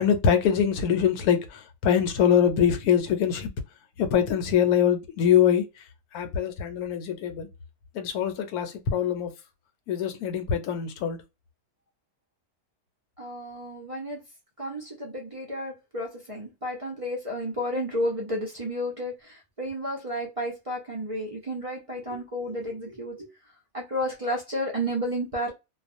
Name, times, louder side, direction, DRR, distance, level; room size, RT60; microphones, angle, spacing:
voice 1, 0.0-3.5 4.0-5.6 6.1-7.5 7.9-9.3 9.9-11.2, left 8 dB, 75° left, 1.1 m, -23 dB
voice 2, 13.2-14.2 14.6-23.3 23.7-25.5, equal, 55° right, 0.3 m, -32 dB
2.4 x 2.2 x 2.5 m
omnidirectional pair, 1.6 m